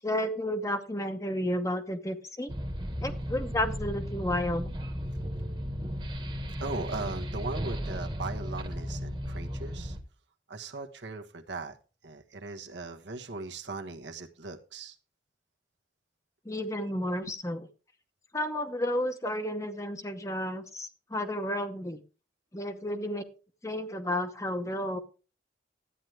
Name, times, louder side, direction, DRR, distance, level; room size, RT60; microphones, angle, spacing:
voice 1, 0.0-2.5 3.0-4.7 16.5-17.6 18.3-22.0 22.5-23.2 23.6-25.0, left 1 dB, 15° left, 8 dB, 0.8 m, -32 dB
sound 1, 2.5-10.0, equal, 25° right, 1.2 m, -35 dB
voice 2, 6.6-10.0 10.5-11.8 12.0-15.0 16.9-17.3, right 3 dB, 85° right, 4 dB, 1.2 m, -39 dB
12.5 x 9.3 x 3.3 m, 0.34 s
head